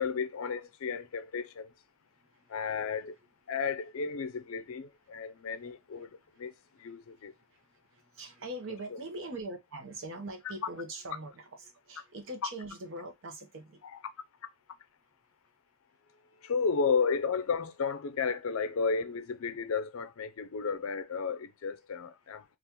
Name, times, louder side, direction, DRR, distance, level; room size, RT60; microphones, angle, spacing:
voice 1, 0.0-1.7 2.5-3.2 3.5-7.3 8.7-9.0 10.4-10.5 13.8-14.0 16.4-22.4, left 5 dB, 65° left, 0.4 m, -33 dB
voice 2, 8.2-13.8, right 1 dB, 60° right, 0.8 m, -42 dB
2.8 x 2.4 x 3.5 m
head